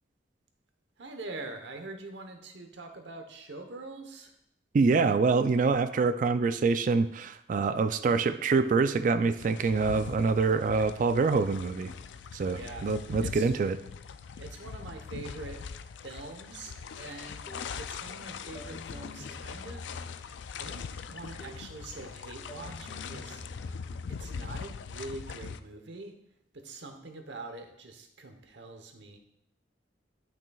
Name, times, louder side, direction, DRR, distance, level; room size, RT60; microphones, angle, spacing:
voice 1, 1.0-4.3 12.5-12.9 13.2-13.6 14.4-15.6 16.0-20.1 20.6-23.4 24.1-26.1 26.5-29.2, right 2 dB, 85° right, 5 dB, 1.0 m, -44 dB
voice 2, 4.7-11.9 12.3-13.8, right 4 dB, 45° right, 11 dB, 0.3 m, -25 dB
sound 1, 9.4-25.6, left 6 dB, 85° left, 0.4 m, -42 dB
sound 2, 17.5-17.9 18.5-20.5 21.4-21.8 22.5-24.2, left 2 dB, 30° left, 0.7 m, -46 dB
11.0 x 6.0 x 2.3 m, 0.79 s
head